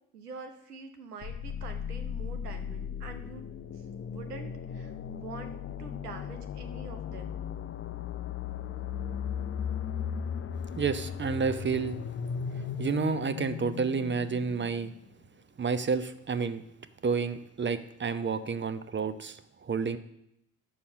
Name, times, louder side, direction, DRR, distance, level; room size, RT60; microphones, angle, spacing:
voice 1, 0.1-3.5 4.1-7.4, right 5 dB, 85° right, 7 dB, 0.9 m, -45 dB
sound 1, 1.2-15.0, left 7 dB, 30° left, 0.6 m, -37 dB
voice 2, 10.8-12.0 12.5-14.9 15.6-16.6 17.0-20.0, right 5 dB, 25° right, 12 dB, 0.7 m, -30 dB
8.7 x 7.0 x 6.5 m, 0.79 s
figure-of-eight pair, 45°, 45 cm